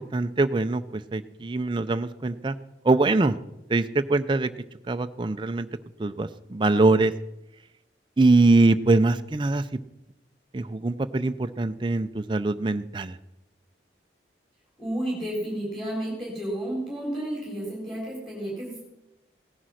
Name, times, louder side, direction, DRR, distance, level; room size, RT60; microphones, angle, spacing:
voice 1, 0.0-2.6 2.8-3.4 3.7-4.5 4.9-5.7 6.0-7.1 8.2-9.7 10.5-13.2, right 2 dB, 25° right, 9 dB, 0.4 m, -23 dB
voice 2, 14.8-18.8, right 1 dB, ahead, -4 dB, 3.9 m, -31 dB
17.0 x 10.0 x 6.4 m, 0.94 s
head